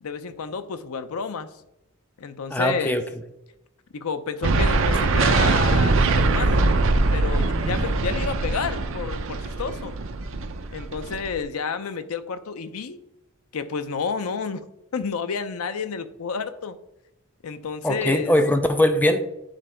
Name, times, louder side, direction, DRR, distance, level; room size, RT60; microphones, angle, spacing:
voice 1, 0.0-1.5 2.2-3.0 3.9-6.7 7.1-9.9 10.7-13.0 13.5-14.6 14.9-16.8 17.4-18.3, left 5 dB, 85° left, 11 dB, 0.5 m, -30 dB
voice 2, 2.5-3.0 17.8-19.2, left 1 dB, 10° left, 8 dB, 0.4 m, -21 dB
sound 1, 4.4-11.4, right 3 dB, 65° right, 0.6 m, -22 dB
9.0 x 3.7 x 4.4 m, 0.88 s
head